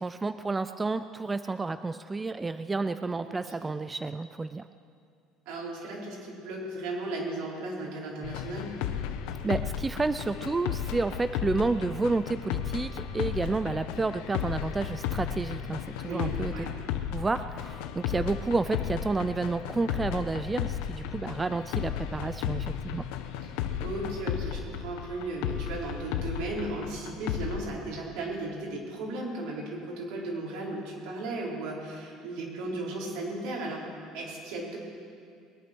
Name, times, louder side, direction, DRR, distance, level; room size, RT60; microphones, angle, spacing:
voice 1, 0.0-4.7 9.4-16.5 17.1-23.0, right 3 dB, 15° right, 11 dB, 0.4 m, -30 dB
voice 2, 3.2-3.7 5.5-8.7 16.0-16.7 23.5-34.8, right 2 dB, 80° right, -3 dB, 4.3 m, -36 dB
sound 1, 8.2-27.6, left 9 dB, 85° left, 0.9 m, -34 dB
21.5 x 9.4 x 6.2 m, 2.3 s
cardioid pair, 135°, 0 cm